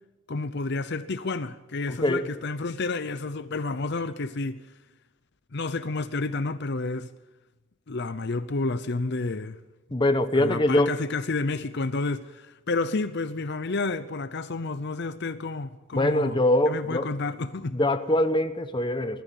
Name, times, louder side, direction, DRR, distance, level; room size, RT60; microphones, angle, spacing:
voice 1, 0.3-4.6 5.5-7.1 7.9-9.6 10.3-16.4 16.7-17.8, left 3 dB, 50° left, 0.7 m, -30 dB
voice 2, 1.9-2.3 9.9-10.9 15.9-17.1 17.7-19.2, left 1 dB, 20° left, 1.0 m, -23 dB
21.0 x 14.5 x 9.2 m
head